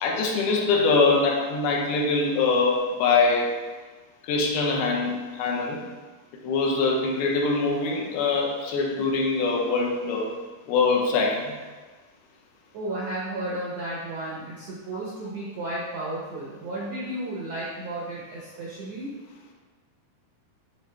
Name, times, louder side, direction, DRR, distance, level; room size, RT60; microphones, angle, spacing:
voice 1, 0.0-3.5 4.2-5.8 6.4-10.3 10.7-11.5, left 3 dB, 80° left, 0 dB, 2.6 m, -23 dB
voice 2, 12.7-19.1, right 1 dB, 80° right, -6 dB, 1.5 m, -33 dB
8.9 x 3.8 x 3.4 m, 1.4 s
omnidirectional pair, 4.4 m